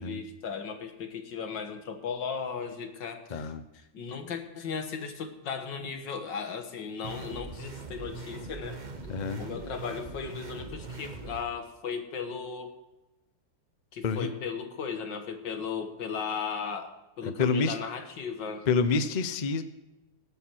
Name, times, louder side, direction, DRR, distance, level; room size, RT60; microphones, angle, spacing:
voice 1, 0.0-3.5 3.9-8.8 9.4-12.7 13.9-18.7, left 6 dB, 75° left, 6 dB, 2.1 m, -36 dB
voice 2, 3.3-3.6 9.1-9.4 14.0-14.3 17.2-17.8 18.7-19.6, left 4 dB, 45° left, 10 dB, 0.5 m, -27 dB
sound 1, 7.0-11.4, right 3 dB, 30° right, 0.9 m, -41 dB
18.5 x 8.3 x 4.6 m, 1.0 s
omnidirectional pair, 2.0 m